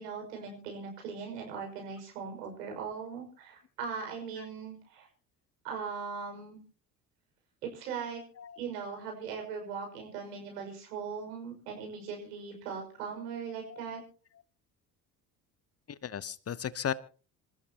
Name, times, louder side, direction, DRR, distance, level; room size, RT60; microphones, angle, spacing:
voice 1, 0.0-5.1 5.6-6.6 7.6-8.2 8.6-14.0, right 6 dB, 75° right, 3 dB, 5.8 m, -39 dB
voice 2, 16.0-16.9, left 8 dB, 30° left, 19 dB, 0.9 m, -35 dB
27.0 x 14.0 x 2.9 m, 0.38 s
figure-of-eight pair, 55°, 47 cm